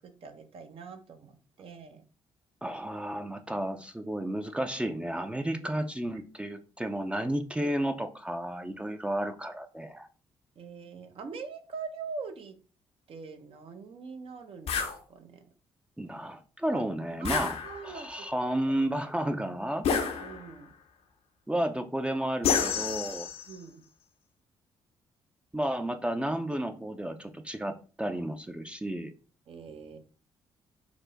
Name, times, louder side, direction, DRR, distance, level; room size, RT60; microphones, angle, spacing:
voice 1, 0.0-2.0 10.6-12.6 13.1-15.4 16.7-16.8 17.2-18.3 18.7-18.9 20.2-20.7 23.5-23.8 29.5-30.0, right 5 dB, 60° right, 6 dB, 0.8 m, -43 dB
voice 2, 2.6-10.1 16.0-17.6 17.8-19.9 21.5-23.3 25.5-29.1, right 1 dB, 10° right, 7 dB, 0.5 m, -32 dB
sound 1, 14.7-15.0 17.2-18.1 19.8-20.6 22.4-23.6, left 6 dB, 70° left, 0.7 m, -29 dB
4.5 x 2.1 x 3.9 m, 0.38 s
supercardioid pair, 60°, 11 cm